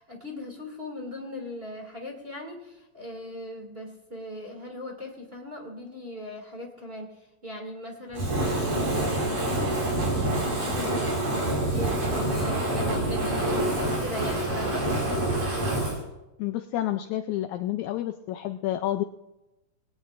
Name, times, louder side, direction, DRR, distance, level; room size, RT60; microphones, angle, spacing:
voice 1, 0.0-11.2 11.4-14.9, left 1 dB, 20° right, 0 dB, 2.2 m, -39 dB
Fire, 8.1-16.0, right 1 dB, 60° right, 6.1 m, -26 dB
voice 2, 16.4-19.0, left 13 dB, 80° left, 8 dB, 1.8 m, -29 dB
21.0 x 17.0 x 2.5 m, 0.97 s
omnidirectional pair, 3.8 m